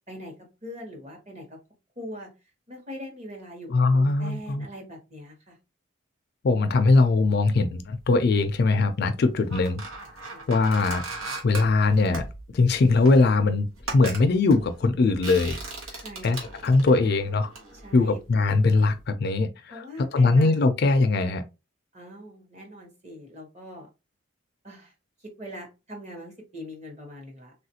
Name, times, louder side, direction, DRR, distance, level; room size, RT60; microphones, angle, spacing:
voice 1, 0.1-1.6 2.0-2.3 2.7-5.6 10.2-10.5 16.0-16.3 17.8-18.2 19.7-20.5 21.9-23.9 24.6-24.9 25.4-27.5, equal, 30° right, 1.0 m, -42 dB
voice 2, 3.7-4.7 6.4-9.8 10.5-11.0 11.4-12.2 12.5-13.7 13.9-15.6 16.2-17.5 17.9-19.8 20.1-21.4, left 3 dB, 50° left, 0.3 m, -21 dB
sound 1, 8.0-8.6 9.2-18.7 19.0-19.1, right 3 dB, 90° right, 1.1 m, -39 dB
3.3 x 2.4 x 2.8 m
head